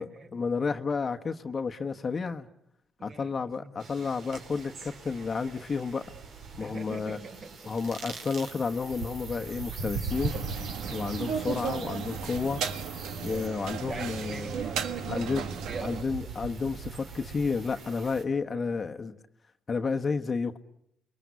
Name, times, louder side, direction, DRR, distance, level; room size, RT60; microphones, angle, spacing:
voice 1, 0.0-2.5 3.0-6.0 6.6-7.2 7.7-10.3 10.9-12.6 13.2-14.5 15.1-15.4 15.8-19.1 19.7-20.6, left 5 dB, 40° left, 7 dB, 1.2 m, -31 dB
voice 2, 3.0-3.3 3.6-3.7 6.6-7.7 10.8-11.1 13.7-16.1 18.5-18.7, right 3 dB, 50° right, 3 dB, 6.3 m, -43 dB
sound 1, 3.8-18.2, right 4 dB, 70° right, 4.7 m, -41 dB
sound 2, 10.1-16.0, right 7 dB, 85° right, 1.6 m, -35 dB
29.0 x 22.0 x 8.3 m, 0.75 s
cardioid pair, 90°, 0 cm